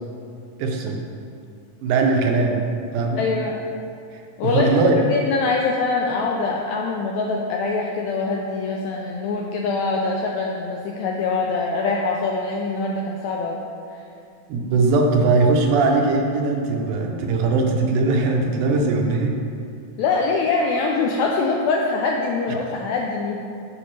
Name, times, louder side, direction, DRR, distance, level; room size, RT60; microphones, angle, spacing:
voice 1, 0.6-1.0 1.8-2.6 2.9-3.2 4.1-5.1 14.5-19.3, right 3 dB, 80° right, 1 dB, 2.1 m, -20 dB
voice 2, 3.2-3.6 4.4-13.6 13.9-14.0 20.0-23.5, left 4 dB, 85° left, -1 dB, 1.6 m, -24 dB
8.5 x 5.1 x 3.2 m, 2.5 s
omnidirectional pair, 3.6 m